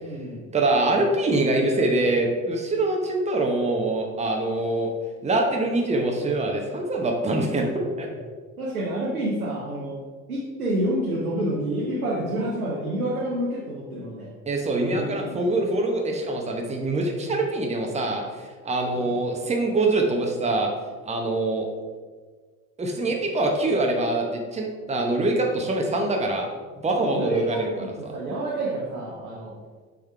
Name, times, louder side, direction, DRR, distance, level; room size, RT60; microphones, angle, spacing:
voice 1, 0.0-0.5 8.6-10.0 10.3-14.3 15.0-15.6 19.0-19.2 27.0-29.6, right 1 dB, 85° right, -4 dB, 0.9 m, -28 dB
voice 2, 0.5-4.9 5.2-8.1 14.5-18.2 18.6-20.7 21.0-21.6 22.8-26.5 26.8-27.9, right 2 dB, 15° right, 1 dB, 1.0 m, -24 dB
6.7 x 5.1 x 3.4 m, 1.5 s
figure-of-eight pair, 55°, 43 cm